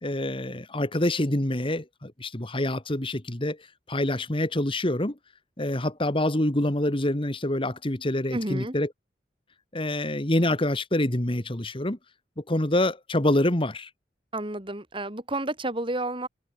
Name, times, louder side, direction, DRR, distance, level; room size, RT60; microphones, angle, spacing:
voice 1, 0.0-3.6 3.9-5.2 5.6-8.9 9.7-12.0 12.4-13.9, left 1 dB, 30° left, 2.0 m, -26 dB
voice 2, 8.3-8.8 14.3-16.3, right 2 dB, 30° right, 3.7 m, -31 dB
head